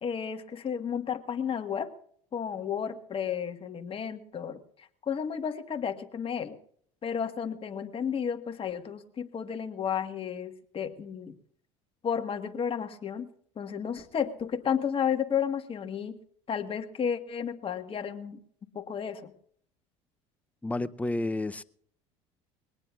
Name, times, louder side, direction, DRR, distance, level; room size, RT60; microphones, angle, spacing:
voice 1, 0.0-1.9 2.3-4.6 5.1-6.6 7.0-11.3 12.0-13.3 13.6-16.2 16.5-18.4 18.7-19.3, left 7 dB, 35° left, 6 dB, 1.5 m, -32 dB
voice 2, 20.6-21.6, left 2 dB, 10° left, 16 dB, 0.6 m, -30 dB
21.5 x 18.5 x 2.4 m, 0.62 s
supercardioid pair, 85°, 16 cm